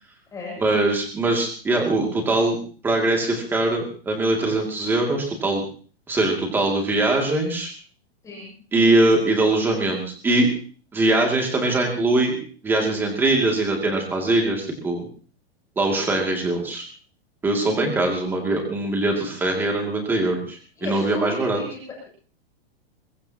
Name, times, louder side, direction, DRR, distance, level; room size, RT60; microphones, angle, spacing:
voice 1, 0.6-2.6 2.8-5.6 6.1-7.7 8.7-10.5 10.9-12.4 12.6-15.0 15.8-16.8 17.4-21.6, right 2 dB, 5° right, 1 dB, 2.5 m, -22 dB
voice 2, 20.8-21.8, left 2 dB, 10° left, -3 dB, 7.1 m, -34 dB
22.5 x 20.0 x 2.9 m, 0.42 s
supercardioid pair, 180°, 30 cm